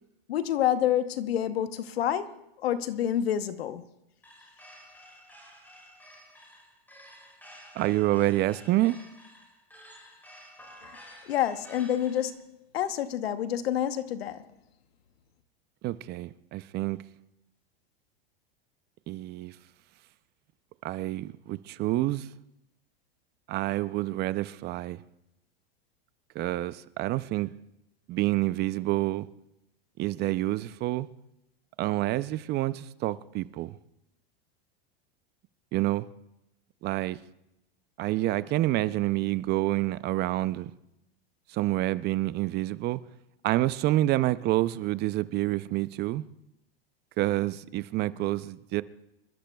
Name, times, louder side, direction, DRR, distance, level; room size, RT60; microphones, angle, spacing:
voice 1, 0.3-2.3 2.6-3.8 11.3-12.5 12.7-14.4, left 10 dB, 85° left, 1.0 m, -28 dB
sound 1, 4.2-12.4, equal, 5° left, 4.8 m, -51 dB
voice 2, 7.8-9.0 15.8-17.0 19.1-19.5 20.8-22.3 23.5-25.0 26.4-27.5 28.1-29.3 30.0-31.1 31.8-33.7 35.7-36.1 36.8-37.2 38.0-40.7 41.5-43.0 43.4-46.2 47.2-48.8, right 16 dB, 35° right, 0.5 m, -28 dB
27.5 x 13.0 x 2.3 m
hypercardioid pair, 120°, 30 cm